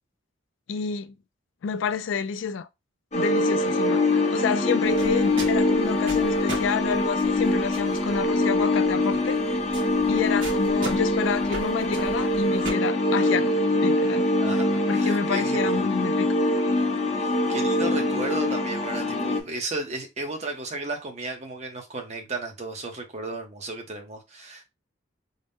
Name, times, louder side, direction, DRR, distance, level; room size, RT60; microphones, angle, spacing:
voice 1, 0.7-1.1 1.6-2.7 3.1-9.6 10.1-13.5 13.8-14.3 14.9-16.3, left 6 dB, 70° left, 0.3 m, -29 dB
sound 1, 3.1-19.4, left 2 dB, 35° left, 0.7 m, -24 dB
sound 2, 4.9-12.7, equal, 75° right, 1.9 m, -38 dB
voice 2, 14.4-15.9 17.2-24.6, right 2 dB, 35° right, 0.8 m, -34 dB
4.0 x 2.1 x 3.5 m
head